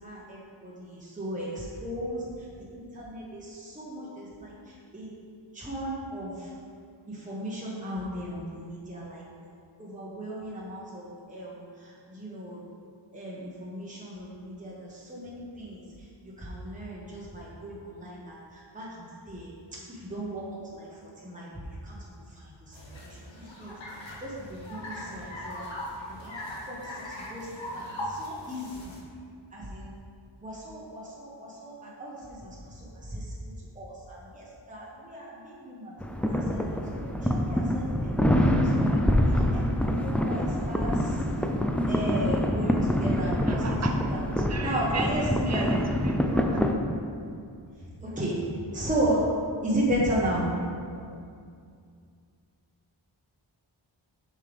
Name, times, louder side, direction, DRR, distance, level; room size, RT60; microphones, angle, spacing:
voice 1, 0.0-2.2 2.7-4.5 4.9-5.1 5.5-6.4 7.1-9.2 9.8-11.6 12.1-12.6 13.1-15.8 16.4-18.4 18.7-18.8 19.3-19.5 20.0-20.4 20.7-20.9 21.2-21.5 21.9-22.0 23.4-23.7 24.2-25.6 26.1-26.4 26.7-26.8 27.3-27.5 27.7-27.8 28.1-28.9 29.5-29.9 30.4-32.5 33.1-33.2 33.8-35.9 36.3-38.1 38.7-40.9 41.9-43.8 44.1-44.2 44.6-45.8 48.0-48.3 48.7-49.2 49.6-50.5, right 1 dB, 15° right, -6 dB, 1.1 m, -34 dB
sound 1, 22.7-29.0, left 1 dB, 70° left, 1.4 m, -39 dB
sound 2, 36.0-46.7, equal, 5° left, 0.4 m, -25 dB
voice 2, 43.5-44.0 44.5-45.8 46.0-46.6, right 4 dB, 35° right, 3 dB, 0.7 m, -37 dB
7.1 x 5.6 x 3.4 m, 2.3 s
wide cardioid pair, 85°, 47 cm